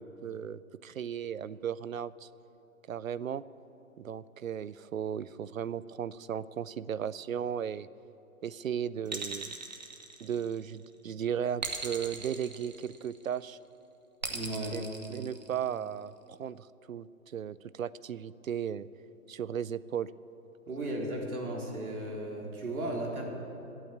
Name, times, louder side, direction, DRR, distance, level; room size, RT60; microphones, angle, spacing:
voice 1, 0.0-2.3 2.9-3.4 4.0-7.9 8.4-9.5 10.2-13.6 14.4-14.5 14.7-14.8 15.1-18.9 19.3-20.1, right 8 dB, 70° right, 18 dB, 0.6 m, -36 dB
sound 1, 9.1-10.7 11.6-13.3 14.2-15.8, right 4 dB, 30° right, 1.0 m, -39 dB
voice 2, 14.3-14.8 20.7-23.2, right 1 dB, 85° right, -1 dB, 4.3 m, -35 dB
15.0 x 9.1 x 9.3 m, 2.9 s
hypercardioid pair, 180°, 43 cm